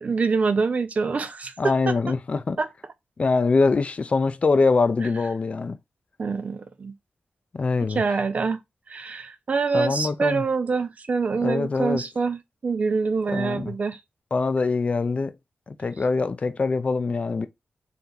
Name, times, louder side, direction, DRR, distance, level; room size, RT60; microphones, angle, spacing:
voice 1, 0.0-2.0 2.6-2.7 6.2-6.9 7.9-8.6 8.9-14.0, right 4 dB, 45° right, 0.5 m, -25 dB
voice 2, 1.6-2.6 3.2-5.8 7.5-8.0 9.7-10.4 11.4-12.0 13.3-13.7 14.3-15.3 15.7-17.5, left 4 dB, 40° left, 0.5 m, -23 dB
3.5 x 2.8 x 3.9 m
wide cardioid pair, 130°, 3 cm